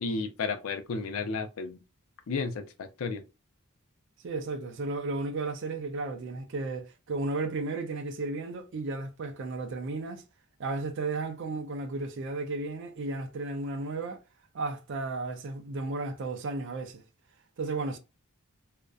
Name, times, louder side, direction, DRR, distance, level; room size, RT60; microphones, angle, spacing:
voice 1, 0.0-1.8 2.3-3.2, left 4 dB, 70° left, 0.4 m, -33 dB
voice 2, 4.2-10.2 10.6-14.2 14.5-17.0 17.6-18.0, right 3 dB, 55° right, 0.4 m, -34 dB
2.5 x 2.1 x 2.3 m
head